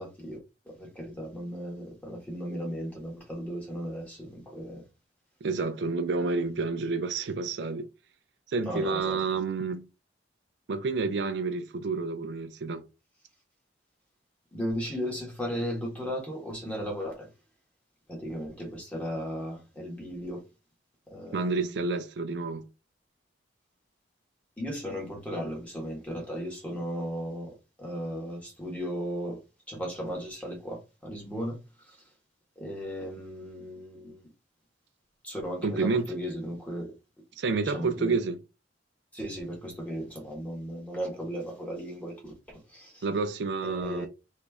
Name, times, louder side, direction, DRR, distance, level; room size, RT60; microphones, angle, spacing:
voice 1, 0.0-4.8 6.2-6.6 8.6-9.2 14.5-17.3 18.1-20.4 21.1-21.9 24.6-29.4 29.7-32.0 32.6-34.2 35.2-36.9 37.6-38.2 39.1-43.0 43.6-44.1, equal, 10° left, 1.4 m, -36 dB
voice 2, 5.4-7.9 8.5-9.9 10.7-12.9 21.3-22.7 35.6-36.1 37.4-38.4 43.0-44.1, right 4 dB, 65° right, 0.4 m, -29 dB
3.0 x 2.6 x 3.4 m
head